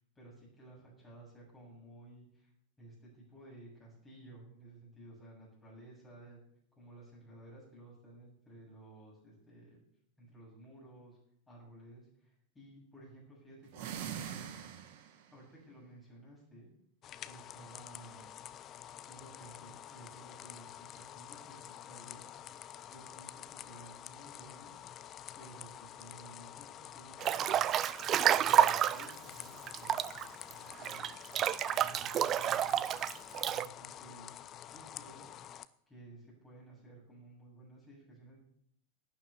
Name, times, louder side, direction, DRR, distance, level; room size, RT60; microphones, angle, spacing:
voice 1, 0.2-2.5 2.8-6.4 6.8-9.8 10.2-11.2 11.5-14.4 15.3-16.7 17.2-18.3 19.1-22.3 22.9-24.8 25.3-27.9 28.3-30.0 30.4-31.2 31.7-32.9 33.4-34.4 34.7-35.3 35.9-38.4, right 1 dB, 15° left, -5 dB, 7.6 m, -55 dB
sound 1, 13.7-15.3, right 9 dB, 50° right, 1.9 m, -42 dB
sound 2, 17.0-35.7, left 11 dB, 30° left, 0.7 m, -49 dB
Breathing / Bathtub (filling or washing) / Splash splatter, 27.2-29.1 29.7-33.7, right 10 dB, 30° right, 0.5 m, -29 dB
12.0 x 10.0 x 8.3 m, 0.69 s
figure-of-eight pair, 90°, 0 cm